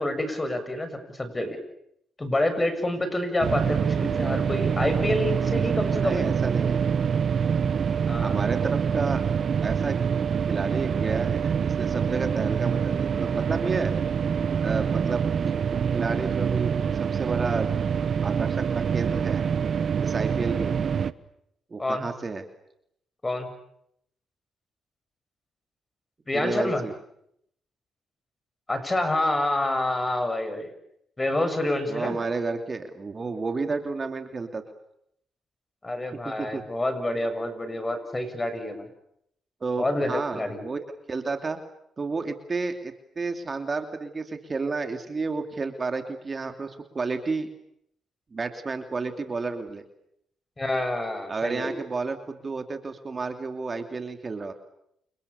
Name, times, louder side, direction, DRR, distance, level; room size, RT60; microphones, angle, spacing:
voice 1, 0.0-1.6 2.2-6.4 8.1-8.4 21.8-22.1 23.2-23.5 26.3-26.8 28.7-30.7 31.2-32.2 35.8-38.9 39.8-40.6 50.6-51.7, left 1 dB, 20° left, 9 dB, 7.2 m, -27 dB
sound 1, 3.4-21.1, right 7 dB, 55° right, 1.2 m, -25 dB
voice 2, 6.0-6.8 8.2-9.2 9.6-10.0 10.5-13.9 14.6-15.5 15.9-17.7 18.2-19.4 20.0-20.8 21.7-22.4 26.3-26.9 31.9-34.6 36.2-36.6 39.6-40.8 41.1-41.6 42.0-47.5 48.3-49.8 51.3-54.5, right 4 dB, 35° right, 6 dB, 2.9 m, -31 dB
29.5 x 28.0 x 7.1 m, 0.75 s
cardioid pair, 80°, 0 cm